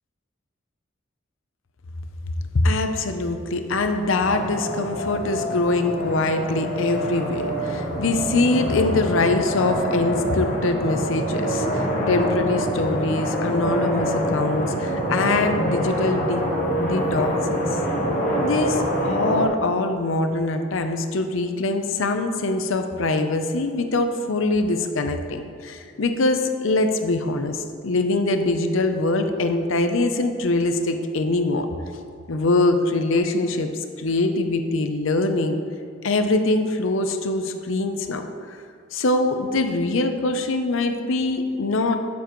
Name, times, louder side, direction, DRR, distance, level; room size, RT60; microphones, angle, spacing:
voice 1, 2.5-16.4 16.8-17.6 18.4-31.7 32.3-33.7 34.0-35.6 36.0-38.6 38.9-42.0, left 2 dB, 75° left, 7 dB, 0.6 m, -23 dB
sound 1, 4.2-19.4, equal, 40° left, 1.1 m, -25 dB
12.5 x 7.3 x 3.1 m, 2.2 s
head